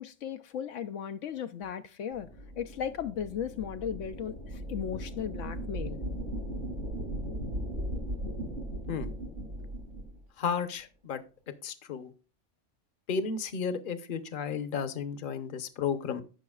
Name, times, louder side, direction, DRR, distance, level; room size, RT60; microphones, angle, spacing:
voice 1, 0.0-2.3 2.6-6.0, left 8 dB, 80° left, 0.9 m, -36 dB
sound 1, 2.1-10.2, right 1 dB, 70° right, 3.1 m, -37 dB
voice 2, 10.4-11.2 11.6-12.1 13.1-16.2, left 6 dB, 45° left, 0.9 m, -33 dB
17.0 x 5.7 x 2.3 m
omnidirectional pair, 1.3 m